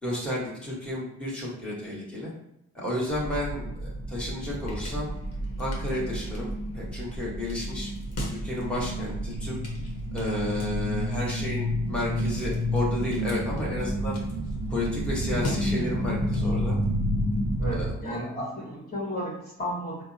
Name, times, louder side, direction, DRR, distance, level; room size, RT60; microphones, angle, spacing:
voice 1, 0.0-2.3 2.7-5.1 5.6-7.9 8.4-9.6 10.1-14.1 14.7-16.8 17.7-18.2, left 1 dB, 5° left, -6 dB, 1.5 m, -32 dB
sound 1, 3.1-17.9, equal, 50° left, 1.1 m, -30 dB
voice 2, 17.6-20.0, equal, 35° left, -5 dB, 1.4 m, -33 dB
3.7 x 2.1 x 2.7 m, 0.84 s
supercardioid pair, 50°, 32 cm